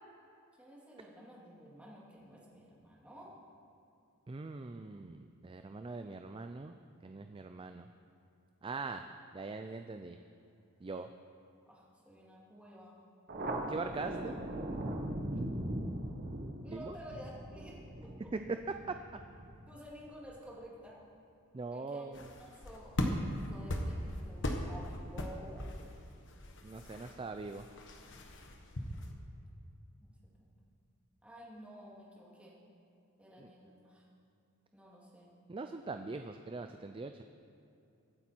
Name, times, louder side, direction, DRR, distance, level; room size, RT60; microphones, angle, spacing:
voice 1, 0.6-3.3 11.7-13.0 16.6-18.3 19.7-21.0 21.7-22.0 22.4-25.7 26.8-27.2 30.0-30.1 30.4-30.5 31.2-32.5 33.2-34.0 34.7-35.3, equal, 5° right, -5 dB, 2.7 m, -52 dB
voice 2, 4.3-6.7 7.0-7.9 8.6-9.0 9.3-10.2 10.8-11.1 13.7-14.4 16.7-17.0 18.3-18.4 18.9-19.0 21.5-22.3 26.6-27.7 33.4-33.5 35.5-37.2, right 3 dB, 25° right, 7 dB, 0.4 m, -42 dB
Thunder, 13.3-20.3, right 1 dB, 45° right, 1.1 m, -40 dB
sound 1, 22.1-29.1, left 1 dB, 55° left, 1.3 m, -39 dB
23.5 x 8.5 x 4.5 m, 2.7 s
head